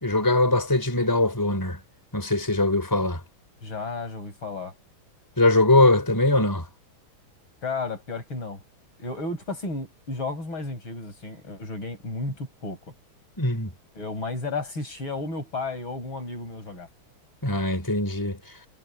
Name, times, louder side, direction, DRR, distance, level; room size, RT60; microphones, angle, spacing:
voice 1, 0.0-1.8 2.1-3.2 5.4-6.7 13.4-13.7 17.4-18.4, left 2 dB, 10° left, 4.4 m, -21 dB
voice 2, 3.6-4.7 7.6-8.6 9.0-12.8 13.9-16.9, left 3 dB, 70° left, 7.7 m, -33 dB
omnidirectional pair, 2.3 m